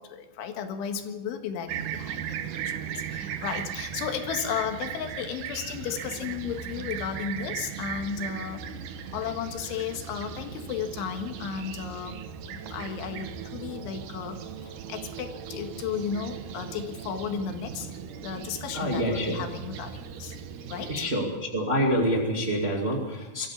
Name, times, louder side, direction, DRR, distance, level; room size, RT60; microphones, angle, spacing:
voice 1, 0.0-8.6 9.1-12.2 12.5-17.9 18.2-20.4 20.7-21.1, left 7 dB, 85° left, 6 dB, 4.0 m, -34 dB
Fixed-wing aircraft airplane, 1.7-21.1, right 8 dB, 70° right, 2.0 m, -38 dB
voice 2, 18.7-19.3 20.9-21.3 21.5-23.5, equal, 25° right, 0 dB, 1.5 m, -26 dB
23.0 x 14.5 x 8.2 m, 1.1 s
omnidirectional pair, 5.3 m